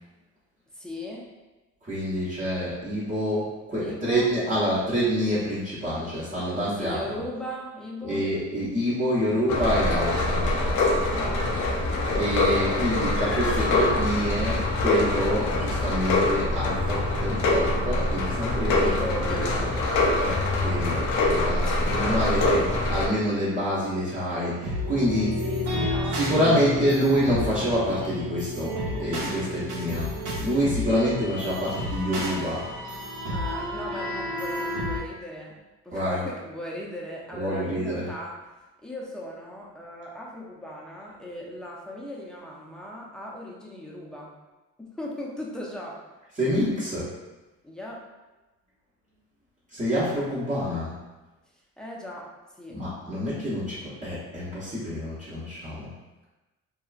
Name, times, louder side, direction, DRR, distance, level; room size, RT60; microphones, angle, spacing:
voice 1, 0.7-1.3 3.8-4.4 6.6-8.3 11.0-11.5 18.8-20.0 21.6-22.6 25.4-26.9 33.3-35.6 35.8-38.5 38.8-44.3 44.8-46.0 47.6-48.1 51.8-52.8 53.2-53.3, left 1 dB, ahead, -4 dB, 0.5 m, -38 dB
voice 2, 1.8-7.0 8.0-10.5 12.1-18.9 19.3-19.4 20.2-22.6 22.9-25.3 26.1-30.1 30.4-32.6 35.9-36.2 37.3-38.1 46.4-47.1 49.7-51.0 52.7-55.9, equal, 25° right, -11 dB, 0.8 m, -27 dB
sound 1, 9.5-23.1, left 2 dB, 75° left, 0.5 m, -24 dB
sound 2, 24.6-35.0, left 1 dB, 85° right, 1.0 m, -31 dB
2.8 x 2.3 x 2.4 m, 1.1 s
cardioid pair, 90°, 30 cm